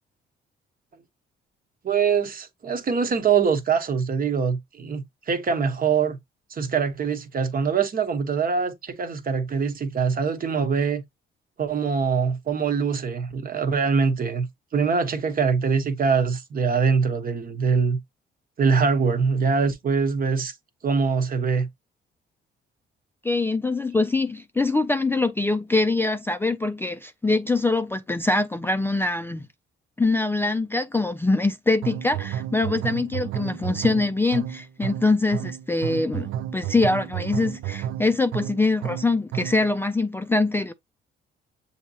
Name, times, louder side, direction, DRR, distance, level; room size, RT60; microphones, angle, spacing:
voice 1, 1.8-6.2 6.5-11.0 11.6-14.5 14.7-18.0 18.6-20.5 20.8-21.7, right 5 dB, 45° right, 1.0 m, -23 dB
voice 2, 23.2-29.5 30.0-40.7, left 3 dB, 10° left, 0.3 m, -23 dB
sound 1, 31.8-39.7, right 10 dB, 80° right, 0.4 m, -31 dB
7.0 x 2.8 x 2.7 m
cardioid pair, 90°, 20 cm